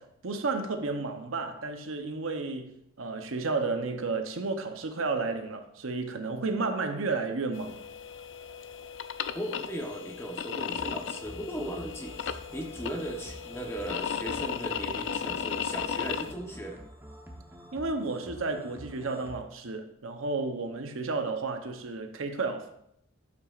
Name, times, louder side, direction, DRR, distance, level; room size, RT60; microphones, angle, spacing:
voice 1, 0.0-7.8 17.7-22.7, right 3 dB, 80° right, 0.8 m, -32 dB
sound 1, 7.5-16.3, left 7 dB, 60° left, 0.4 m, -36 dB
voice 2, 9.3-16.8, equal, 10° left, 0.9 m, -37 dB
sound 2, 10.6-19.4, equal, 10° right, 0.9 m, -48 dB
11.5 x 5.8 x 2.5 m
head